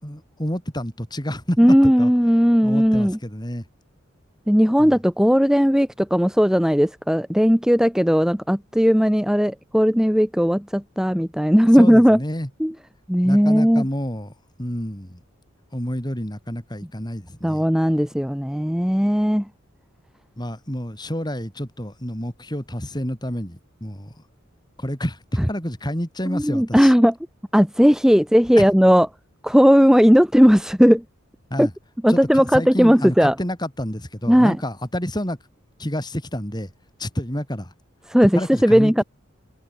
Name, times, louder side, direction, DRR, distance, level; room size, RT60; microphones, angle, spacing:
voice 1, 0.0-2.1 2.6-3.7 4.8-5.0 11.7-12.5 13.2-14.3 14.6-15.2 15.7-17.7 20.4-24.1 24.8-26.9 28.6-28.7 31.5-31.7 32.1-35.4 35.8-36.7 37.0-37.7 38.3-39.0, equal, 20° left, 5.5 m, -29 dB
voice 2, 1.6-3.2 4.5-12.2 12.6-12.7 13.1-13.9 17.4-19.4 26.3-27.1 27.5-29.1 29.4-31.0 31.6-31.7 32.0-33.3 34.3-34.6 38.1-39.0, equal, 5° right, 1.4 m, -16 dB
open air
head